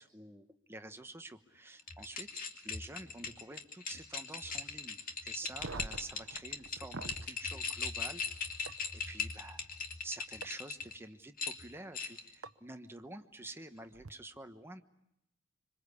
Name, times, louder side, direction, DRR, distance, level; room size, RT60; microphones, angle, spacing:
voice 1, 0.0-8.2 9.1-9.6 10.0-14.8, right 2 dB, 10° right, 7 dB, 1.2 m, -48 dB
sound 1, 1.8-10.9 11.4-12.3, left 5 dB, 45° left, 2.3 m, -40 dB
sound 2, 5.5-7.3 8.7-8.8 10.4-10.5 12.4-12.5 13.9-14.1, right 3 dB, 80° right, 0.9 m, -44 dB
26.0 x 24.5 x 8.4 m, 0.84 s
head